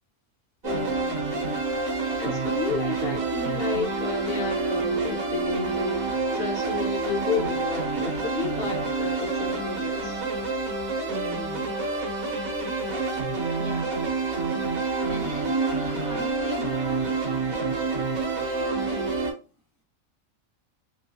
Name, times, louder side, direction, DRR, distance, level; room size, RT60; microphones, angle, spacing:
voice 1, 0.6-1.3 2.2-10.2, left 6 dB, 65° left, 2 dB, 0.6 m, -32 dB
sound 1, 0.6-19.3, right 3 dB, 85° right, 1.3 m, -28 dB
voice 2, 11.1-11.7 13.6-13.9 15.0-17.3, right 2 dB, 35° right, -1 dB, 0.4 m, -36 dB
2.9 x 2.3 x 2.7 m, 0.33 s
omnidirectional pair, 1.4 m